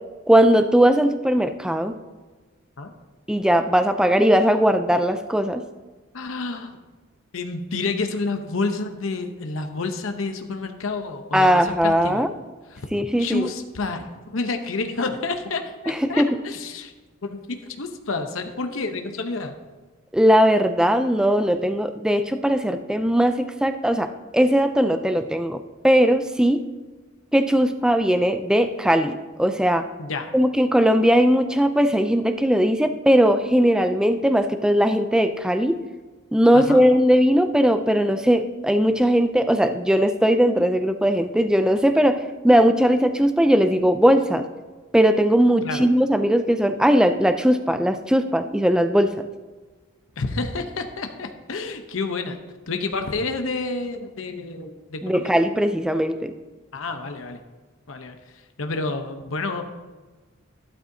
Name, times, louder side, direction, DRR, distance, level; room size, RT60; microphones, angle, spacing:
voice 1, 0.3-1.9 3.3-5.6 11.3-12.3 12.9-13.5 15.9-16.3 20.1-26.6 27.3-29.9 30.3-35.8 36.3-44.4 44.9-49.1 55.0-56.3, equal, 5° right, 8 dB, 0.3 m, -19 dB
voice 2, 6.1-6.8 7.3-12.2 12.7-12.9 13.2-16.9 17.2-19.6 30.0-30.3 36.5-36.8 45.6-45.9 50.2-52.4 52.7-55.3 56.7-57.4 57.9-59.6, left 3 dB, 70° left, 6 dB, 0.8 m, -29 dB
12.0 x 12.0 x 2.7 m, 1.3 s
head